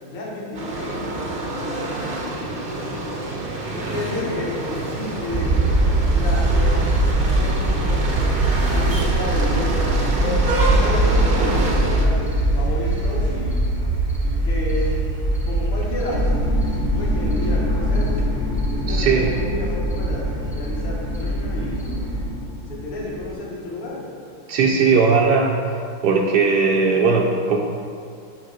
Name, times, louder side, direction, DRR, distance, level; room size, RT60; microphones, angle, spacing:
voice 1, 0.0-3.2 3.7-5.6 6.1-8.2 8.7-10.4 10.7-12.3 12.6-13.6 14.2-14.9 15.5-16.3 16.9-18.2 18.7-24.0, left 2 dB, 90° left, -4 dB, 2.4 m, -31 dB
sound 1, 0.5-12.0, right 2 dB, 55° right, 0.6 m, -27 dB
sound 2, 5.3-22.3, right 1 dB, 5° right, 0.9 m, -22 dB
sound 3, 16.1-23.3, left 2 dB, 60° left, 0.7 m, -29 dB
voice 2, 18.8-19.3 24.5-25.6 26.0-27.6, right 4 dB, 75° right, -1 dB, 0.9 m, -18 dB
9.1 x 4.7 x 4.9 m, 2.3 s
omnidirectional pair, 2.4 m